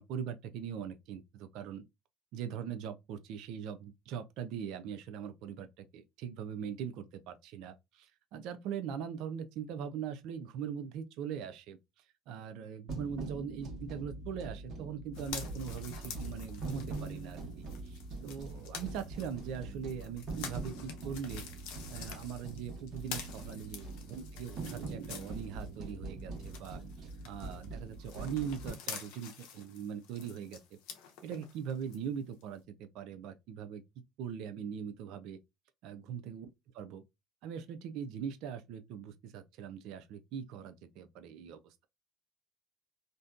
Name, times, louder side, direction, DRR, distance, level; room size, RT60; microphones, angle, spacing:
voice 1, 0.0-1.8 2.3-11.8 12.3-21.4 21.9-26.8 27.2-30.6 31.2-33.8 34.2-35.4 35.8-36.5 36.8-37.0 37.4-41.7, right 8 dB, 75° right, 0.4 m, -41 dB
sound 1, 12.9-28.7, right 3 dB, 60° right, 1.0 m, -43 dB
sound 2, 15.1-25.9 26.2-32.0 32.4-32.5, left 7 dB, 85° left, 0.6 m, -48 dB
2.6 x 2.1 x 2.3 m
supercardioid pair, 80°, 0 cm